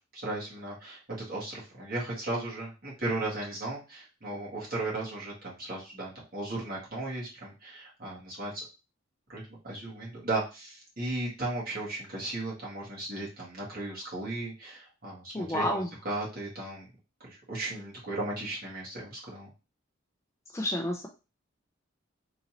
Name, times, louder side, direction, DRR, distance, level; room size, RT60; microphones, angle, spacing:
voice 1, 0.1-1.0 1.3-8.7 9.3-16.9 17.2-19.5, right 2 dB, 50° right, -5 dB, 1.8 m, -36 dB
voice 2, 15.3-15.9 20.5-21.1, left 1 dB, 15° left, 1 dB, 0.4 m, -30 dB
3.9 x 2.7 x 3.0 m, 0.29 s
head